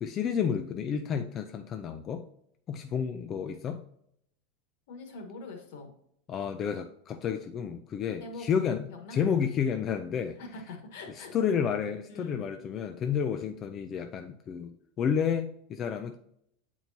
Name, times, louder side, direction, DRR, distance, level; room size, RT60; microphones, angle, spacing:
voice 1, 0.0-2.2 2.7-3.8 6.3-10.4 11.1-16.2, left 7 dB, 20° left, 0.3 m, -31 dB
voice 2, 4.9-5.9 8.2-8.5 8.9-9.2 10.4-11.3 12.1-12.4, left 3 dB, 60° left, 1.5 m, -43 dB
8.0 x 4.4 x 2.7 m
supercardioid pair, 180°, 0 cm